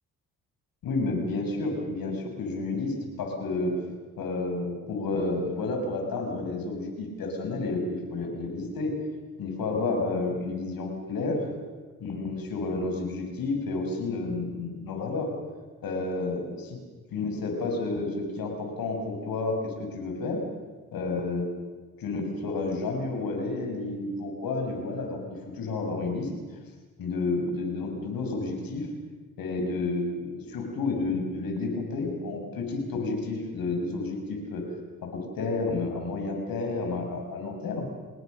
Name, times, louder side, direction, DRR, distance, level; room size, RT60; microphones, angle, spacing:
voice 1, 0.8-3.8 4.2-8.9 9.4-11.5 12.0-15.3 15.8-16.8 17.1-20.4 20.9-21.5 22.0-26.3 27.0-28.9 29.4-34.7 35.0-37.9, left 3 dB, 75° left, 3 dB, 6.4 m, -30 dB
29.5 x 20.0 x 6.6 m, 1.4 s
supercardioid pair, 55°, 35 cm